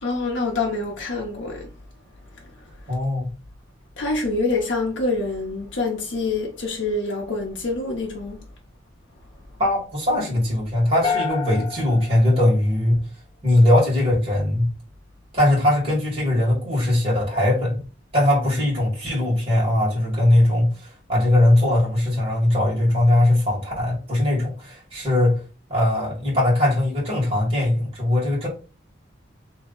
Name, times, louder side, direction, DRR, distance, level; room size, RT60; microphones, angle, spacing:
voice 1, 0.0-1.7 4.0-8.4, left 3 dB, 80° left, 0.8 m, -26 dB
voice 2, 2.9-3.3 9.6-13.0 13.4-14.7 15.3-17.8 18.1-25.4 25.7-28.5, left 1 dB, 30° right, 1.8 m, -20 dB
sound 1, 11.0-13.3, left 5 dB, 30° left, 0.7 m, -29 dB
3.0 x 2.7 x 3.9 m
head